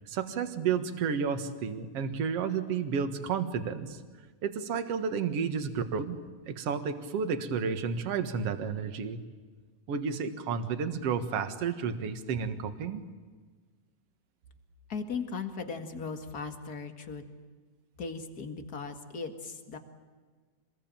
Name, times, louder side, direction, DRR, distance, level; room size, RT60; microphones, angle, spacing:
voice 1, 0.1-4.0 4.4-6.2 6.5-9.2 9.9-13.0, right 6 dB, 55° right, 9 dB, 2.5 m, -31 dB
voice 2, 14.9-17.2 18.0-19.8, left 5 dB, 35° left, 7 dB, 2.1 m, -37 dB
26.5 x 21.0 x 9.0 m, 1.5 s
omnidirectional pair, 3.4 m